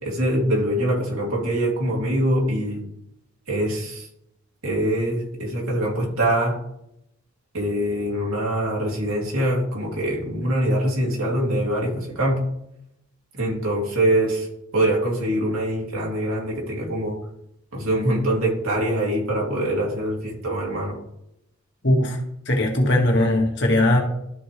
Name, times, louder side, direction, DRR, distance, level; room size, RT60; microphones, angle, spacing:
voice 1, 0.0-2.8 3.5-4.1 4.6-6.5 7.5-12.4 13.3-14.5 14.7-17.1 17.7-20.9, right 1 dB, 75° right, -3 dB, 2.7 m, -23 dB
voice 2, 21.8-22.2 22.5-24.0, left 1 dB, 55° left, 0 dB, 1.8 m, -19 dB
13.0 x 4.5 x 3.3 m, 0.78 s
head